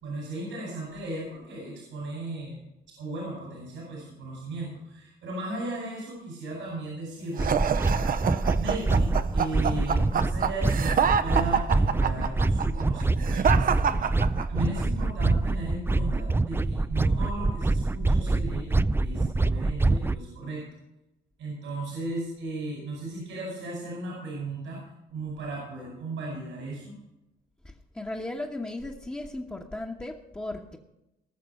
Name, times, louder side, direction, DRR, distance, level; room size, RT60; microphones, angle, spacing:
voice 1, 0.0-2.6 3.0-7.5 8.6-14.1 14.5-18.7 19.0-20.6 21.4-24.8 25.1-27.0, right 2 dB, 85° right, -4 dB, 5.3 m, -36 dB
sound 1, 7.4-20.2, right 2 dB, 10° right, 0.4 m, -25 dB
sound 2, 7.4-14.8, right 7 dB, 45° right, 0.7 m, -26 dB
voice 2, 27.6-30.8, left 2 dB, 10° left, -2 dB, 1.2 m, -36 dB
19.5 x 6.6 x 5.5 m, 0.92 s
cardioid pair, 90°, 20 cm